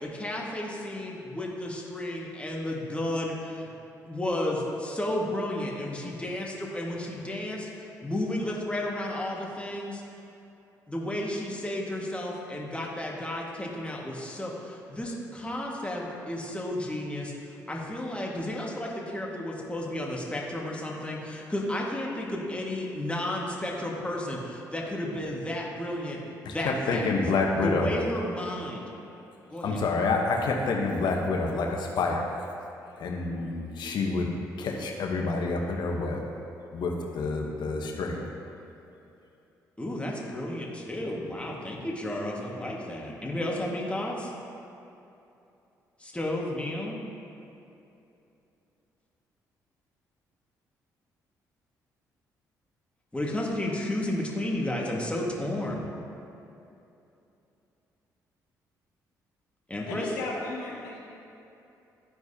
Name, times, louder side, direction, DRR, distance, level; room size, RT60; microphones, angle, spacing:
voice 1, 0.0-3.7 4.1-10.0 10.9-27.1 27.6-28.8 29.5-29.8 39.8-44.3 46.0-47.0 53.1-55.8 59.7-60.0, left 1 dB, 15° left, -3 dB, 1.7 m, -32 dB
voice 2, 26.4-27.9 29.6-32.3 33.0-34.3 34.6-36.3 36.7-38.2, left 3 dB, 65° left, 1 dB, 1.0 m, -28 dB
voice 3, 59.9-61.0, left 2 dB, 90° left, -4 dB, 1.2 m, -34 dB
13.0 x 4.6 x 2.8 m, 2.8 s
hypercardioid pair, 50°, 8 cm